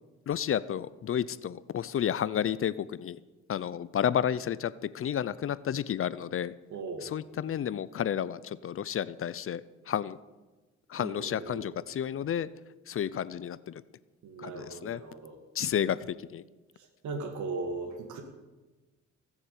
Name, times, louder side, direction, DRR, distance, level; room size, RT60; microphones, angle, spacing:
voice 1, 0.3-2.7 3.0-3.2 3.5-6.5 7.1-9.6 9.9-10.2 10.9-12.5 12.9-13.6 14.4-15.0 15.6-16.0 16.3-16.4, left 9 dB, 45° left, 18 dB, 0.6 m, -31 dB
voice 2, 6.7-7.1 11.0-11.7 14.2-15.4 16.8-18.2, right 3 dB, 75° right, 4 dB, 2.1 m, -38 dB
17.5 x 7.3 x 8.4 m, 1.2 s
cardioid pair, 90°, 30 cm